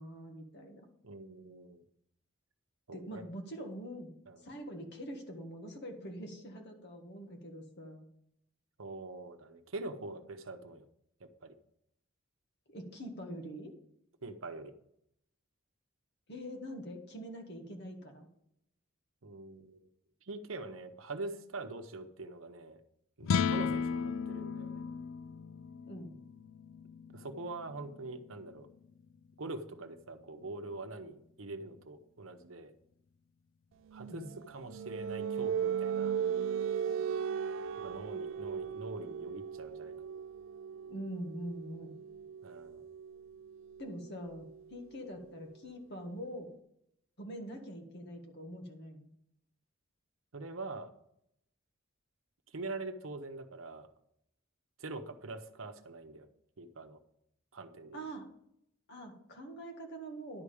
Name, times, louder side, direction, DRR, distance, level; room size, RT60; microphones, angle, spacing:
voice 1, 0.0-0.9 2.9-4.1 4.4-8.0 12.7-13.7 16.3-18.3 25.9-26.2 34.1-34.3 40.9-42.0 43.8-46.5 47.2-49.1 57.9-58.3 58.9-60.4, equal, 55° left, 3 dB, 1.7 m, -44 dB
voice 2, 1.0-1.8 2.9-3.2 4.3-4.4 8.8-10.8 11.2-11.5 14.2-14.7 19.2-19.9 20.2-22.8 23.2-24.8 27.1-28.7 29.4-32.7 33.9-36.2 37.8-40.0 42.4-42.8 50.3-50.9 52.5-53.9 54.8-56.3 56.6-57.0 57.5-58.1, right 2 dB, 80° right, 8 dB, 0.9 m, -44 dB
sound 1, 23.2-29.6, left 6 dB, 70° left, 0.3 m, -36 dB
sound 2, 33.9-45.4, right 7 dB, 65° right, 0.3 m, -38 dB
11.0 x 4.9 x 6.9 m, 0.76 s
head